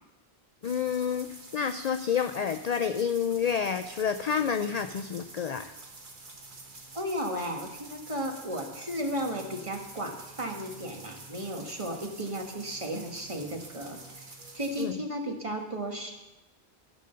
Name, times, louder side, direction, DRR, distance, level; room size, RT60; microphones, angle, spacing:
voice 1, 0.6-1.3 1.5-5.7 14.8-15.0, left 7 dB, 55° left, 8 dB, 0.4 m, -29 dB
sound 1, 0.6-14.8, right 3 dB, 50° right, 1.5 m, -48 dB
voice 2, 6.9-16.1, equal, 30° right, 2 dB, 1.4 m, -34 dB
14.0 x 5.1 x 6.7 m, 1.0 s
omnidirectional pair, 1.1 m